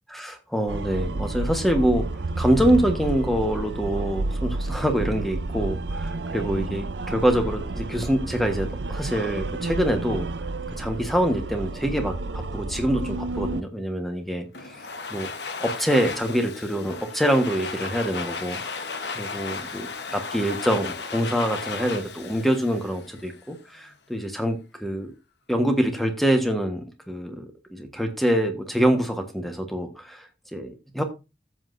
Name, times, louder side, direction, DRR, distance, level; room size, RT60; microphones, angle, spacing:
voice 1, 0.1-10.3 10.8-14.8 15.1-15.3 15.6-25.1 25.5-31.0, equal, ahead, 5 dB, 1.3 m, -25 dB
sound 1, 0.7-13.6, right 2 dB, 80° right, 0.6 m, -30 dB
Domestic sounds home sounds, 14.5-23.5, left 4 dB, 75° left, 1.2 m, -35 dB
13.5 x 7.8 x 2.6 m, 0.28 s
head